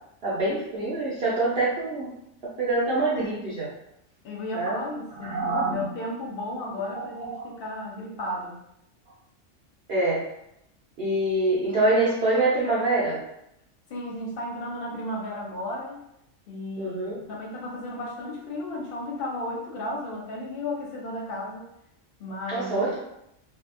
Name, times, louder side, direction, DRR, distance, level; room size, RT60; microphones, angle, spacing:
voice 1, 0.2-2.1 2.6-3.7 4.5-4.8 5.2-5.9 6.9-7.5 9.9-10.3 11.0-13.2 16.8-17.2 22.5-23.0, right 2 dB, 60° right, -7 dB, 0.8 m, -25 dB
voice 2, 4.2-5.4 5.7-8.6 13.9-16.0 16.5-21.7 22.2-22.9, left 1 dB, 55° left, -2 dB, 0.7 m, -34 dB
2.7 x 2.3 x 2.5 m, 0.80 s
omnidirectional pair, 1.3 m